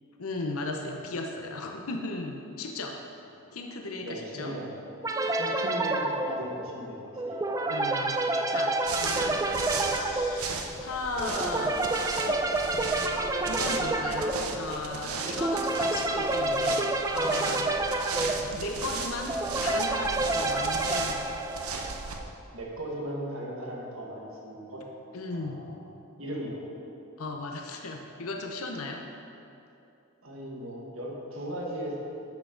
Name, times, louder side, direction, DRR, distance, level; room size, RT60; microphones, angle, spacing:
voice 1, 0.2-3.0 3.5-4.6 7.7-8.2 8.5-11.8 12.2-12.5 13.5-17.8 18.1-19.3 19.6-21.2 25.1-25.6 27.2-29.0, left 2 dB, 85° left, 2 dB, 0.7 m, -36 dB
voice 2, 4.0-4.7 5.4-7.4 22.5-24.8 25.3-25.9 26.2-26.6 30.2-32.0, right 1 dB, 70° right, -2 dB, 1.6 m, -37 dB
sound 1, 5.0-22.2, right 2 dB, 15° right, 0.3 m, -29 dB
sound 2, 8.8-22.2, right 4 dB, 90° right, 0.8 m, -36 dB
10.5 x 7.1 x 3.9 m, 2.7 s
head